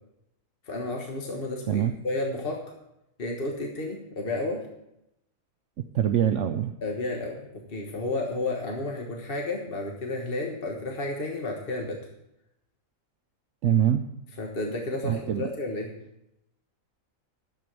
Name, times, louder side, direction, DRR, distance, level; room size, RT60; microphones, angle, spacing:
voice 1, 0.6-2.6 3.2-4.6 6.8-12.0 14.4-15.9, left 2 dB, 45° left, 0 dB, 1.5 m, -32 dB
voice 2, 5.9-6.7 13.6-14.0 15.0-15.4, right 10 dB, 65° right, 6 dB, 0.9 m, -24 dB
11.0 x 7.8 x 6.6 m, 0.85 s
omnidirectional pair, 1.4 m